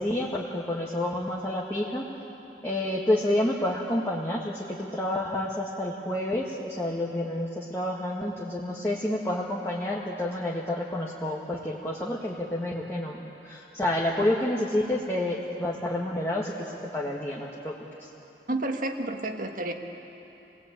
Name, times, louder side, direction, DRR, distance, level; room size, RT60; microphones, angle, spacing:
voice 1, 0.0-2.1 2.6-13.2 13.4-17.7 18.0-18.1, left 1 dB, 15° left, -4 dB, 1.9 m, -29 dB
voice 2, 18.5-19.7, right 2 dB, 50° right, 4 dB, 1.7 m, -30 dB
27.5 x 19.5 x 9.1 m, 3.0 s
head